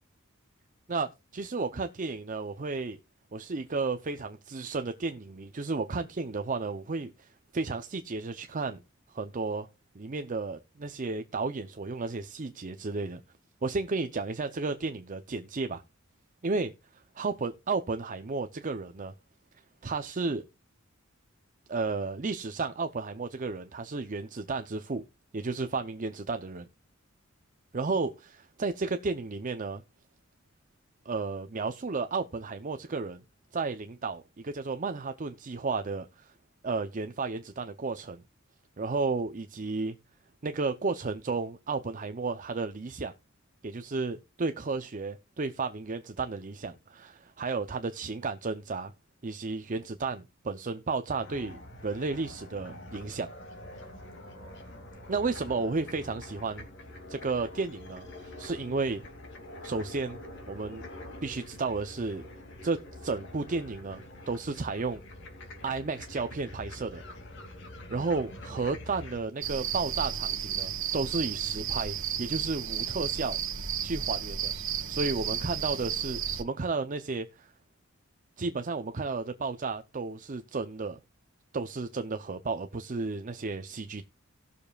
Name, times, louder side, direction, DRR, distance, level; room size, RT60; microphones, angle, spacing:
voice 1, 0.9-3.0 3.3-8.8 9.1-9.7 9.9-13.2 13.6-15.8 16.4-16.7 17.2-19.1 19.8-20.4 21.7-25.0 25.3-26.7 27.7-28.3 28.6-29.8 31.1-33.2 33.5-36.3 36.6-38.2 38.8-39.9 40.4-43.1 43.6-48.9 49.2-53.3 55.1-56.6 57.1-59.0 59.6-60.2 60.5-60.8 61.2-62.3 62.6-65.0 65.6-67.0 67.9-73.4 73.8-74.5 74.9-77.5 78.4-81.0 81.5-84.0, right 3 dB, 40° right, 0.6 m, -33 dB
sound 1, 51.2-69.2, left 1 dB, 60° left, 2.5 m, -45 dB
sound 2, 69.4-76.4, right 8 dB, 65° right, 1.5 m, -33 dB
18.0 x 6.8 x 2.4 m
head